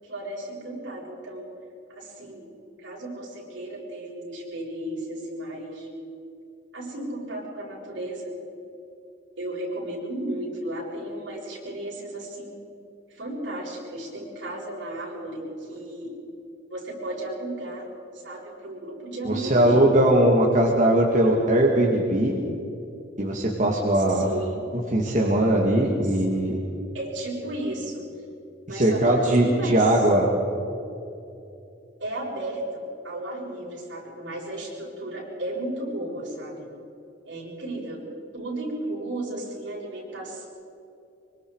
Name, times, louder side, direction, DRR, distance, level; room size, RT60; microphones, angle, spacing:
voice 1, 0.0-1.5 1.9-2.5 2.8-5.9 6.7-8.3 9.4-12.6 13.1-16.1 16.7-17.9 18.1-19.8 23.9-24.7 26.0-26.2 26.9-28.1 28.7-30.0 32.0-36.7 37.3-38.0 38.3-40.5, right 1 dB, 75° right, -3 dB, 7.3 m, -34 dB
voice 2, 19.2-22.3 23.2-24.3 24.9-26.6 28.7-30.3, right 1 dB, 40° right, -3 dB, 2.4 m, -20 dB
25.0 x 25.0 x 4.9 m, 2.7 s
head